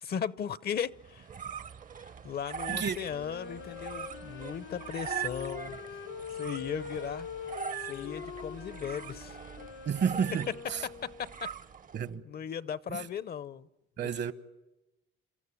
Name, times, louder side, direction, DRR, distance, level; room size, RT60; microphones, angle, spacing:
voice 1, 0.0-1.2 2.2-5.8 6.4-7.3 7.9-9.4 10.8-11.5 12.2-13.7 14.0-14.3, left 8 dB, 50° left, 0.7 m, -37 dB
sound 1, 0.9-12.1, right 7 dB, 40° right, 0.7 m, -42 dB
Wind instrument woodwind instrument, 3.0-11.4, left 6 dB, 90° left, 3.6 m, -43 dB
voice 2, 9.9-10.9 11.9-12.2 12.9-13.1 14.0-14.3, right 7 dB, 60° right, 1.1 m, -31 dB
28.0 x 14.0 x 9.8 m
cardioid pair, 90°, 20 cm